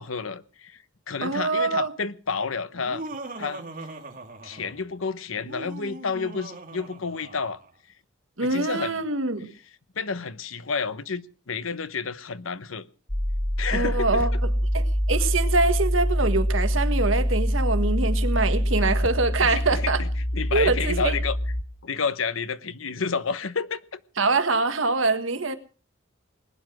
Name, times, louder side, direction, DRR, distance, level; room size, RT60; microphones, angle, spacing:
voice 1, 0.0-3.0 3.4-3.9 4.4-7.6 8.4-9.0 9.9-12.9 13.6-14.4 19.4-20.1 20.3-21.4 21.8-24.0, left 5 dB, 85° left, 1.0 m, -30 dB
voice 2, 1.2-1.9 8.4-9.5 13.7-14.5 14.7-20.0 20.5-21.2 24.2-25.6, right 3 dB, 75° right, 1.6 m, -24 dB
Laughter, 2.7-4.9 5.4-7.7, right 2 dB, 45° right, 2.4 m, -40 dB
sound 1, 13.1-21.6, equal, 10° left, 0.9 m, -25 dB
20.5 x 9.9 x 6.3 m
head